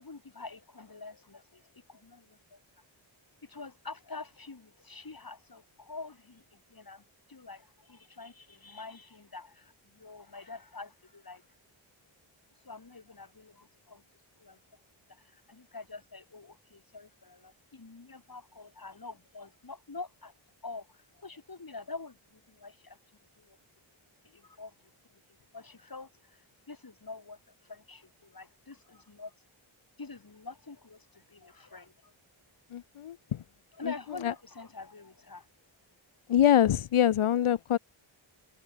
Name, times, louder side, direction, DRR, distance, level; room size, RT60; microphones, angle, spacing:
voice 1, 0.0-2.6 3.4-11.4 12.7-14.0 14.4-14.6 15.1-20.3 20.6-23.0 23.4-23.6 24.2-24.7 25.1-25.2 25.5-29.3 30.0-32.1 33.7-35.5, left 3 dB, 45° left, 7.2 m, -46 dB
voice 2, 32.7-33.2 34.2-34.3 36.3-37.8, left 10 dB, 90° left, 0.9 m, -24 dB
wide cardioid pair, 65°, 49 cm